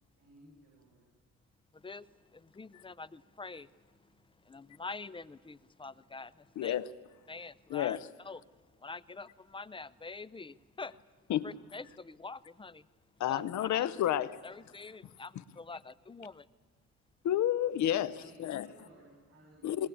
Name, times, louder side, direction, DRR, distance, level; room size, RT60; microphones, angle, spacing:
voice 1, 0.2-1.0 18.0-19.9, right 1 dB, 45° right, 8.0 m, -58 dB
voice 2, 1.7-3.7 4.4-6.8 7.3-8.0 8.2-8.4 8.8-10.9 11.4-12.9 13.2-13.9 14.4-16.5, left 3 dB, 15° left, 0.6 m, -45 dB
voice 3, 6.6-6.9 7.7-8.1 11.3-11.5 13.2-14.4 17.2-18.7 19.6-19.9, left 11 dB, 70° left, 0.8 m, -30 dB
20.0 x 19.0 x 8.6 m
cardioid pair, 90°, 30 cm